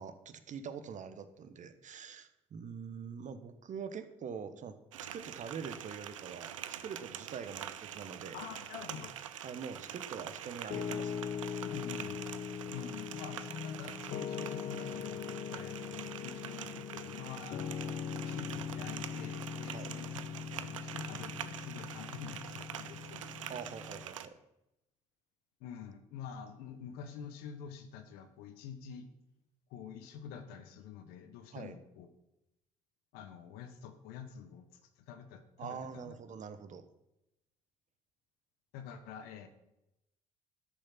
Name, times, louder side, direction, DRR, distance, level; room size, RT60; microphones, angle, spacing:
voice 1, 0.0-6.5 6.8-8.4 9.4-11.3 19.7-19.9 23.5-24.3 31.5-31.8 35.6-36.8, right 6 dB, 50° right, 11 dB, 1.3 m, -44 dB
sound 1, 4.9-24.3, right 10 dB, 90° right, 0.5 m, -45 dB
voice 2, 8.3-9.1 11.6-12.3 12.7-17.8 18.2-20.3 20.5-23.2 25.6-29.1 29.7-32.1 33.1-34.6 35.0-36.1 38.7-39.5, left 7 dB, 70° left, 8 dB, 1.2 m, -47 dB
Piano, 10.7-24.0, left 8 dB, 50° left, 0.7 m, -41 dB
13.0 x 6.7 x 5.8 m, 0.88 s
hypercardioid pair, 55°, 16 cm